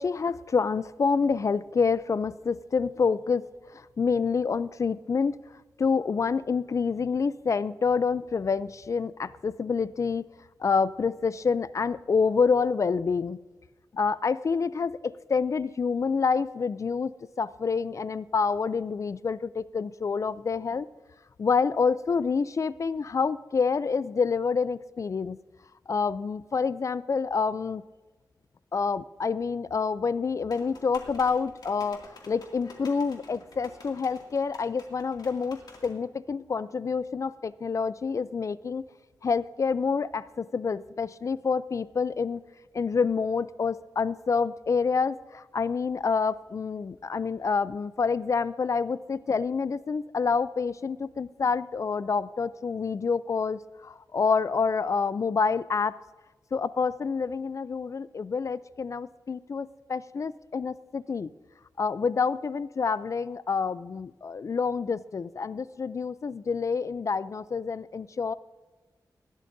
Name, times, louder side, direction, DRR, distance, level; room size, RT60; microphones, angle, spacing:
voice 1, 0.0-5.4 5.8-10.2 10.6-13.4 13.9-17.1 17.4-20.9 21.4-25.4 25.9-27.8 28.7-38.8 39.2-42.4 42.7-56.0 56.5-61.3 61.8-68.3, left 5 dB, 45° left, 17 dB, 0.3 m, -27 dB
sound 1, 30.5-36.0, left 2 dB, 70° left, 2.3 m, -50 dB
19.5 x 12.5 x 2.6 m, 1.2 s
wide cardioid pair, 140°, 7 cm